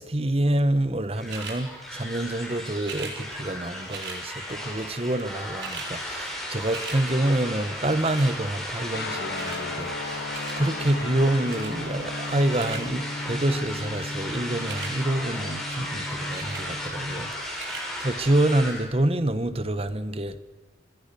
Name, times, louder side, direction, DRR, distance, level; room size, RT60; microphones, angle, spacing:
voice 1, 0.0-17.6 18.0-20.4, right 1 dB, 35° right, 1.1 m, -27 dB
sound 1, 1.1-18.8, left 1 dB, ahead, 5.8 m, -35 dB
sound 2, 1.3-1.6 2.8-3.2 3.9-4.2 5.1-5.2 5.4-5.9 6.3-7.0 8.0-8.3 9.4-9.6 10.3-10.6 11.5-11.7 12.3-12.8 14.5-14.9 16.3-16.7 17.5-17.9 18.5-18.6, right 5 dB, 80° right, 4.1 m, -38 dB
Guitar, 8.9-17.4, left 2 dB, 65° left, 1.4 m, -36 dB
26.5 x 19.0 x 6.9 m
head